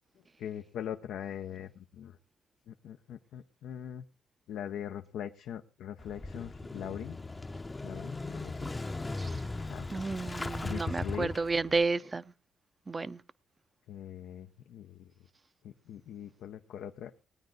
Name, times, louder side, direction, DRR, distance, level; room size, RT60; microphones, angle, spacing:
voice 1, 0.4-2.2 2.7-4.0 4.5-7.2 7.8-8.7 9.6-9.9 10.3-11.3 13.9-15.1 15.6-17.1, left 9 dB, 80° left, 0.6 m, -41 dB
Motorcycle / Engine starting, 6.0-11.8, left 2 dB, 20° left, 0.7 m, -38 dB
voice 2, 9.9-12.2 12.9-13.2, right 3 dB, 25° right, 0.5 m, -31 dB
19.5 x 9.4 x 3.8 m
cardioid pair, 90°, 0 cm